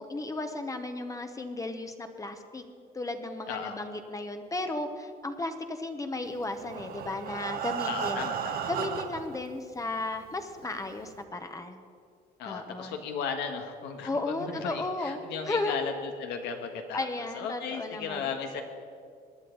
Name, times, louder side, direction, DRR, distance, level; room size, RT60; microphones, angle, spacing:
voice 1, 0.0-2.6 2.9-8.3 8.7-11.8 12.4-13.0 14.0-15.2 15.4-15.8 16.9-18.3, left 2 dB, 20° left, 7 dB, 0.9 m, -34 dB
voice 2, 3.5-3.8 7.8-8.7 12.4-18.6, left 6 dB, 85° left, 5 dB, 1.5 m, -36 dB
Breathing, 6.5-9.4 10.2-10.3 10.6-10.7 11.2-11.3, right 8 dB, 65° right, 1.0 m, -34 dB
19.5 x 10.5 x 4.0 m, 2.2 s
cardioid pair, 110°, 17 cm